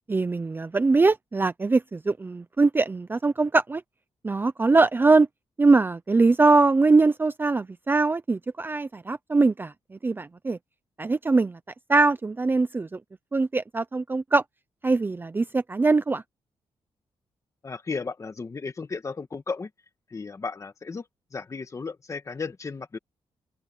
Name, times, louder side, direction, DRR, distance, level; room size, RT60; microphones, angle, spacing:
voice 1, 0.1-3.8 4.2-5.3 5.6-10.6 11.0-11.6 11.9-13.0 13.3-14.4 14.8-16.2, right 3 dB, 20° right, 0.5 m, -22 dB
voice 2, 17.6-19.7 20.1-21.1 21.3-23.0, left 4 dB, 30° left, 1.7 m, -34 dB
open air
wide cardioid pair, 140°, 10 cm